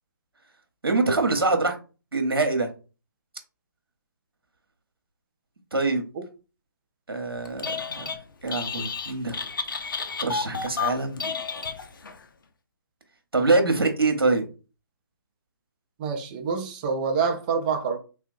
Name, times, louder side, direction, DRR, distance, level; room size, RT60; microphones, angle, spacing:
voice 1, 0.8-1.8 2.1-2.7 5.7-6.0 7.1-8.2 8.4-9.4 9.9-11.2 13.3-14.4, right 3 dB, 85° right, 0.7 m, -24 dB
Telephone, 7.5-8.2 8.5-12.2, left 5 dB, 65° left, 0.5 m, -31 dB
voice 2, 16.0-18.0, right 5 dB, 25° right, 0.5 m, -26 dB
3.4 x 2.1 x 2.6 m
figure-of-eight pair, 140°, 12 cm